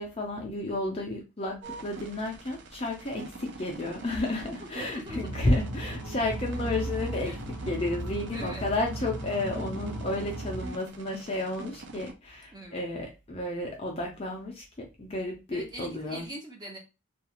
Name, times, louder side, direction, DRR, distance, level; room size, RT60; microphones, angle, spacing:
voice 1, 0.0-1.6 1.8-7.4 7.7-16.3, left 2 dB, 25° left, 1 dB, 0.4 m, -32 dB
sound 1, 1.6-12.1, right 2 dB, 55° right, 0.4 m, -45 dB
voice 2, 4.6-5.3 7.2-7.4 8.2-8.7 12.5-12.9 15.5-16.8, right 1 dB, 20° right, -1 dB, 0.7 m, -42 dB
sound 2, 5.1-10.7, right 1 dB, 90° right, 1.0 m, -36 dB
2.3 x 2.3 x 2.8 m, 0.27 s
head